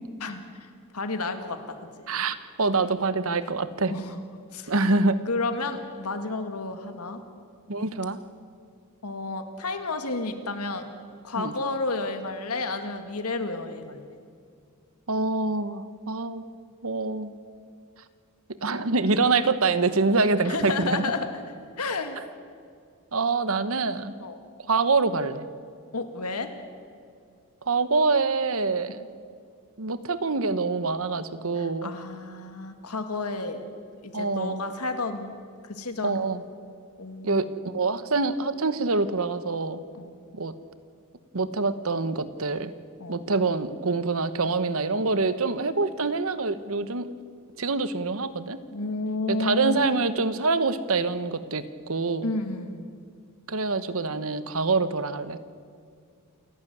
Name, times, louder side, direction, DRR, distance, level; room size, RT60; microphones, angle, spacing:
voice 1, 0.2-0.7 0.9-1.8 3.9-4.2 4.5-4.7 5.3-7.2 9.0-10.9 11.2-14.0 20.4-21.4 21.8-22.2 24.2-24.4 25.9-26.5 31.6-33.7 34.0-35.3 35.6-36.3 37.0-37.6 39.9-40.1 43.0-43.2 48.7-49.8 52.2-52.9, left 3 dB, 85° left, 7 dB, 2.0 m, -31 dB
voice 2, 2.1-4.0 4.7-5.2 7.7-8.2 11.4-11.5 15.1-16.4 16.8-17.3 18.6-21.0 23.1-24.1 24.7-25.5 27.7-29.1 29.8-31.9 34.1-34.6 36.0-36.4 37.2-39.8 40.3-40.5 41.3-42.7 43.1-47.1 47.6-48.6 49.3-52.3 53.5-55.4, right 3 dB, 65° right, 13 dB, 1.1 m, -25 dB
28.5 x 11.5 x 9.4 m, 2.2 s
head